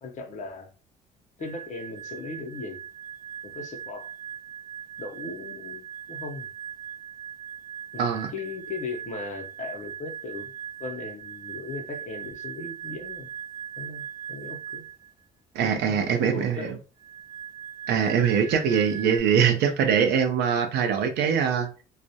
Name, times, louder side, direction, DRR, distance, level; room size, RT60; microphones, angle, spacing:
voice 1, 0.0-0.7 1.4-2.8 3.4-4.1 5.0-6.5 7.9-10.5 10.8-13.3 13.8-14.9 15.9-16.8, left 3 dB, 45° left, 0.7 m, -37 dB
sound 1, 1.4-15.1 17.0-19.2, right 8 dB, 25° right, 0.8 m, -40 dB
voice 2, 15.5-16.7 17.9-21.8, right 7 dB, 80° right, 0.6 m, -23 dB
2.3 x 2.1 x 2.7 m
cardioid pair, 110°, 17 cm